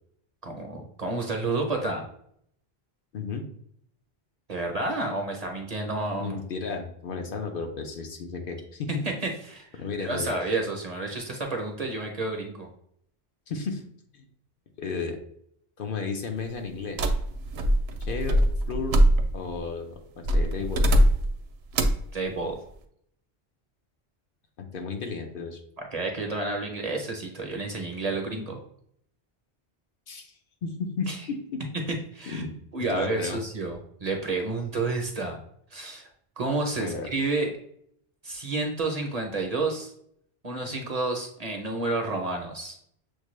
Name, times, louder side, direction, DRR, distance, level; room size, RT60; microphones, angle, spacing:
voice 1, 0.4-2.0 4.5-6.4 9.0-9.7 10.0-12.7 22.1-22.6 25.8-28.6 31.1-31.2 31.9-32.4 32.7-35.4 35.7-36.1 36.4-37.6 38.2-39.9 40.4-42.8, right 2 dB, 45° right, 2 dB, 0.7 m, -30 dB
voice 2, 3.1-3.4 6.2-9.1 9.8-10.3 13.5-13.8 14.1-14.2 14.8-15.2 15.8-17.0 18.0-18.4 18.7-19.0 19.3-20.9 24.6-25.6 30.1-30.3 30.6-31.6 32.3-32.5 32.9-33.4 36.7-37.1, left 4 dB, 65° left, 4 dB, 0.8 m, -33 dB
sound 1, 17.0-19.6 20.2-21.4 21.7-22.1, equal, 80° right, 0.8 m, -22 dB
6.4 x 2.2 x 3.1 m, 0.68 s
omnidirectional pair, 1.0 m